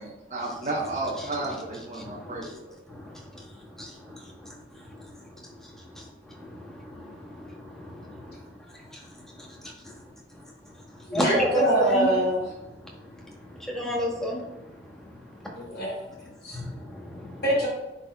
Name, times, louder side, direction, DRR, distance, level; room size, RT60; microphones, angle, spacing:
voice 1, 0.0-2.7, right 2 dB, 40° right, -5 dB, 1.0 m, -32 dB
voice 2, 2.0-2.5 2.9-3.1 3.8-4.2 4.4-4.5 6.5-8.3 11.1-12.1 13.7-14.4 16.5-17.4, equal, 5° left, -2 dB, 1.1 m, -31 dB
voice 3, 11.1-12.5 15.6-15.9 16.4-16.6 17.4-17.7, right 1 dB, 55° left, -4 dB, 2.1 m, -24 dB
10.0 x 4.1 x 2.3 m, 1.0 s
head